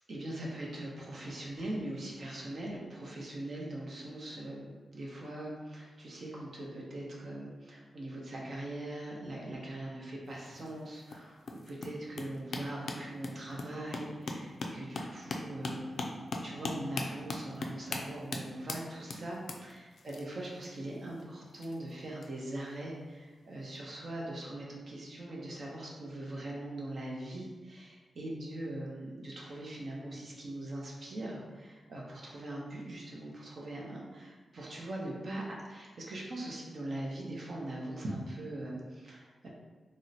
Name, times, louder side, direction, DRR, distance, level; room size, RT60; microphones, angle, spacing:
voice 1, 0.1-16.0 16.4-39.5, right 1 dB, 50° right, -3 dB, 0.7 m, -41 dB
sound 1, 10.3-22.3 23.2-23.5 23.8-23.9, left 3 dB, 70° left, 0.3 m, -40 dB
2.8 x 2.0 x 3.9 m, 1.4 s
wide cardioid pair, 125°, 0 cm